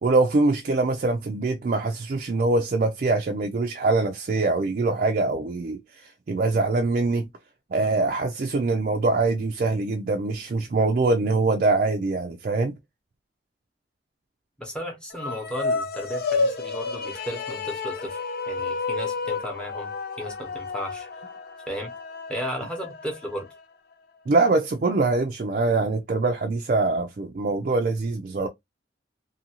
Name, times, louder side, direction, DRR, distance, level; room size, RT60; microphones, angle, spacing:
voice 1, 0.0-7.3 7.7-12.8 24.3-28.5, right 3 dB, 50° right, 0.4 m, -23 dB
voice 2, 14.6-21.1 21.7-21.9 22.3-23.5, equal, 5° left, 0.9 m, -34 dB
sound 1, 15.1-23.6, left 4 dB, 60° left, 0.5 m, -31 dB
2.7 x 2.6 x 2.8 m
head